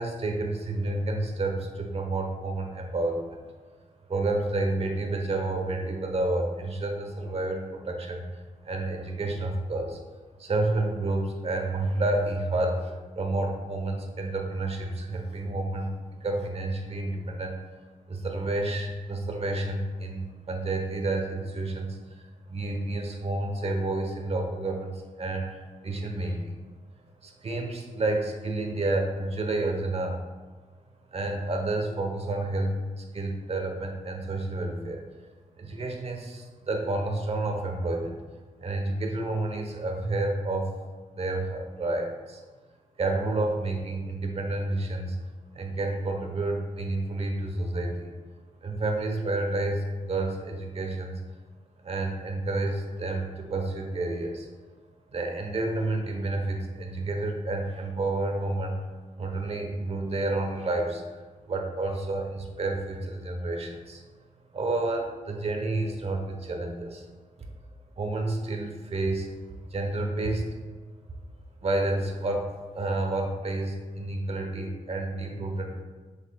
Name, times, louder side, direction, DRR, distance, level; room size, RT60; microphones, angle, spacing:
voice 1, 0.0-3.4 4.1-8.2 8.6-10.0 10.4-15.9 16.2-17.6 18.1-22.0 22.5-25.4 25.8-26.5 27.2-30.1 31.1-32.7 33.0-35.0 35.6-38.1 38.6-40.7 41.2-42.4 43.0-45.2 45.5-48.1 48.6-51.2 51.8-54.5 55.1-58.7 59.2-61.0 61.5-64.0 64.5-67.0 68.0-69.3 69.7-70.5 71.6-72.5 72.7-75.7, right 2 dB, 50° right, 3 dB, 1.1 m, -30 dB
7.2 x 6.9 x 2.4 m, 1.3 s
wide cardioid pair, 120°, 14 cm